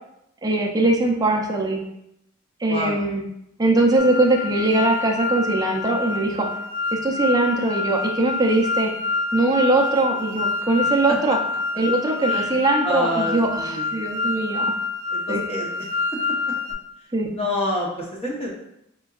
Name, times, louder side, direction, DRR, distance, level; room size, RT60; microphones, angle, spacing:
voice 1, 0.4-1.8 2.6-3.2 3.6-6.5 6.9-8.9 9.3-11.4 11.8-14.7 15.3-15.4 17.1-17.4, right 2 dB, 20° right, -1 dB, 0.4 m, -21 dB
voice 2, 2.7-3.0 10.8-10.9 12.3-12.5 12.8-14.1 15.1-15.7 17.3-18.5, left 1 dB, 30° left, -2 dB, 0.8 m, -27 dB
sound 1, 4.0-16.7, left 3 dB, 60° left, 0.8 m, -27 dB
4.3 x 3.8 x 2.3 m, 0.81 s
head